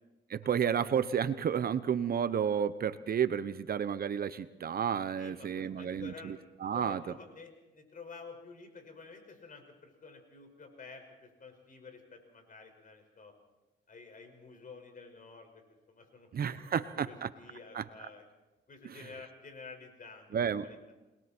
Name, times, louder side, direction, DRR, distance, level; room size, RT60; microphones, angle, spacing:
voice 1, 0.3-7.0 16.3-17.3 17.7-17.8 18.8-19.0 20.3-20.7, right 8 dB, 50° right, 13 dB, 0.9 m, -31 dB
voice 2, 5.2-6.3 6.7-13.3 13.9-15.6 15.9-16.3 16.6-18.2 18.7-20.4 20.6-20.8, left 4 dB, 45° left, 5 dB, 5.5 m, -50 dB
28.0 x 21.5 x 4.5 m, 1.1 s
cardioid pair, 90°, 20 cm